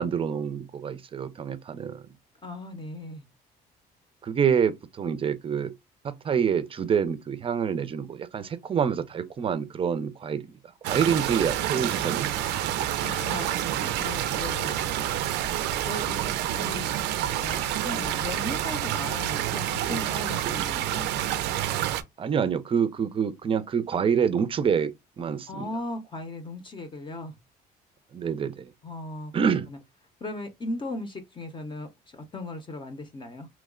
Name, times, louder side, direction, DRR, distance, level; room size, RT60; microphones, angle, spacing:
voice 1, 0.0-2.0 4.2-5.7 6.0-10.5 10.9-12.3 22.2-24.9 25.2-25.7 28.1-28.6 29.3-29.7, right 7 dB, 30° right, 0.5 m, -26 dB
voice 2, 2.4-3.2 13.0-14.8 15.9-16.9 17.4-21.1 25.5-27.3 28.8-29.8 30.2-33.5, left 2 dB, 30° left, 0.7 m, -37 dB
sound 1, 10.8-22.0, right 12 dB, 85° right, 0.5 m, -28 dB
3.0 x 2.1 x 3.6 m
cardioid pair, 110°, 17 cm